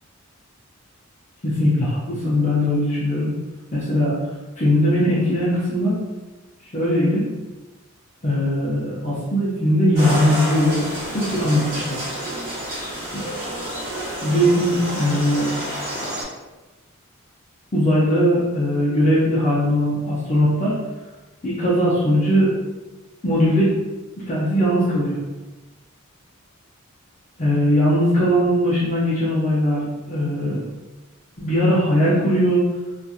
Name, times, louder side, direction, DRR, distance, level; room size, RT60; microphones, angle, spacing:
voice 1, 1.4-3.3 3.7-4.1 4.6-6.0 6.6-7.2 8.2-10.8 11.1-12.0 13.1-13.2 14.2-15.5 17.7-20.7 21.4-22.5 23.2-23.8 24.3-25.2 27.4-30.6 31.4-32.6, equal, 35° left, -8 dB, 0.6 m, -19 dB
sound 1, 10.0-16.2, equal, 45° right, 1.1 m, -29 dB
2.8 x 2.4 x 2.4 m, 1.1 s
head